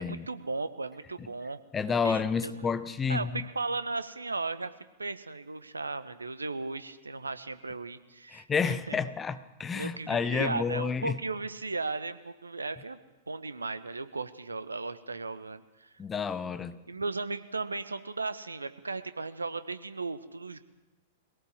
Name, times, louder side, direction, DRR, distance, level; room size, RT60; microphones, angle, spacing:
voice 1, 0.0-1.6 2.0-2.7 3.1-4.7 5.0-9.0 9.7-13.0 13.3-15.9 16.9-20.6, right 3 dB, 80° right, 12 dB, 1.3 m, -36 dB
voice 2, 1.7-3.4 8.3-11.2 16.0-16.8, left 5 dB, 15° left, 13 dB, 1.2 m, -30 dB
22.5 x 17.5 x 7.9 m, 1.1 s
figure-of-eight pair, 100°, 0 cm